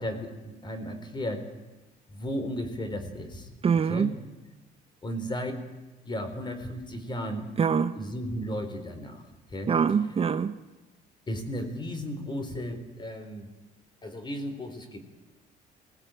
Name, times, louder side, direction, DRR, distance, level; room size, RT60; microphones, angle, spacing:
voice 1, 0.0-1.4 2.1-3.5 3.9-4.1 5.0-5.6 6.0-7.5 7.9-9.2 9.5-9.7 11.3-13.5 14.0-15.0, equal, 25° left, 9 dB, 4.0 m, -34 dB
voice 2, 3.6-4.1 7.6-8.0 9.7-10.6, right 6 dB, 35° right, 10 dB, 0.9 m, -24 dB
22.5 x 17.5 x 9.0 m, 1.1 s
cardioid pair, 110°, 17 cm